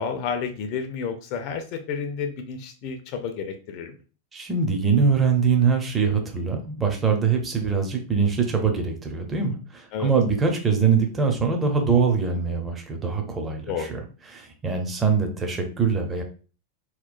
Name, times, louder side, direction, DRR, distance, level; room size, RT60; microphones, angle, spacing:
voice 1, 0.0-4.0 9.9-10.1 13.7-14.1, left 6 dB, 45° left, 7 dB, 0.4 m, -31 dB
voice 2, 4.3-14.0 14.3-16.2, right 5 dB, 15° right, 3 dB, 0.6 m, -23 dB
2.8 x 2.0 x 2.4 m, 0.37 s
figure-of-eight pair, 90°, 0 cm